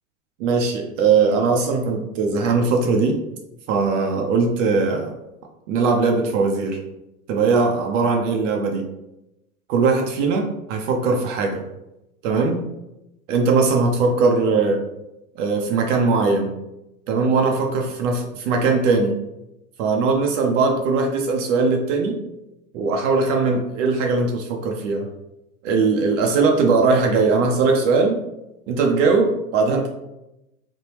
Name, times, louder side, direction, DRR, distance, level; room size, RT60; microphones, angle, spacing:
voice 1, 0.4-3.2 3.7-5.1 5.7-6.8 7.3-8.9 9.7-11.6 12.2-12.7 13.3-14.8 15.4-16.6 17.1-19.2 19.8-22.2 22.7-25.1 25.6-28.2 28.7-29.9, right 4 dB, 60° right, 2 dB, 0.6 m, -20 dB
3.4 x 2.1 x 2.9 m, 0.91 s
hypercardioid pair, 115°, 42 cm